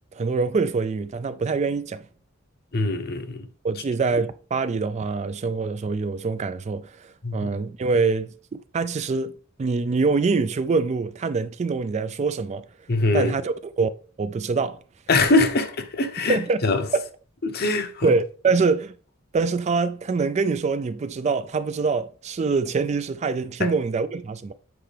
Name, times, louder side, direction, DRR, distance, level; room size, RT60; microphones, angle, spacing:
voice 1, 0.1-2.0 3.6-9.3 9.6-12.6 13.1-13.9 14.2-14.8 16.3-16.6 16.9-17.0 18.0-18.9 19.3-24.5, right 4 dB, 35° right, 0.3 m, -24 dB
voice 2, 2.7-3.5 7.2-7.5 12.9-13.3 15.1-16.8 17.4-18.1 23.6-23.7, left 3 dB, 50° left, 0.8 m, -23 dB
7.9 x 4.5 x 3.3 m
head